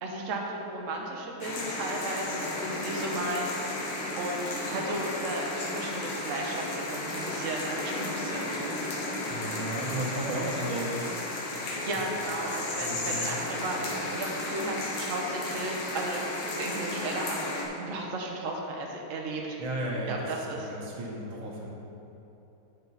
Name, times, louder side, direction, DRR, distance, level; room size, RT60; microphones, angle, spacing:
voice 1, 0.0-8.6 11.6-19.6 20.1-20.7, right 2 dB, 50° right, -1 dB, 1.1 m, -35 dB
sound 1, 1.4-17.7, left 2 dB, 80° left, 2.0 m, -34 dB
voice 2, 9.3-10.9 12.8-13.4 19.6-20.3 20.6-21.7, right 1 dB, 80° right, -2 dB, 2.0 m, -34 dB
9.5 x 6.5 x 4.1 m, 3.0 s
omnidirectional pair, 2.3 m